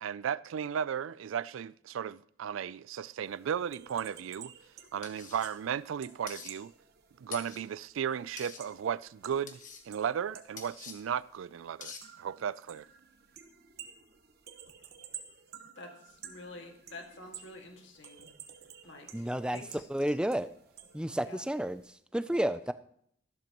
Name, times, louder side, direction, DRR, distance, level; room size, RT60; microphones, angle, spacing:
voice 1, 0.0-4.5 4.9-6.7 7.2-12.9, right 8 dB, 80° right, 0.3 m, -35 dB
sound 1, 3.2-21.9, right 8 dB, 50° right, 1.1 m, -53 dB
sound 2, 5.0-5.5 6.3-6.5 7.3-7.6 8.4-8.6 9.5-9.8 10.6-11.0 11.8-12.0, left 6 dB, 40° left, 1.4 m, -45 dB
voice 2, 15.8-18.3 18.8-19.8 21.2-21.4, left 2 dB, 70° left, 2.0 m, -49 dB
voice 3, 19.1-20.5 20.9-22.7, right 1 dB, 5° right, 0.3 m, -31 dB
13.5 x 12.0 x 3.0 m
head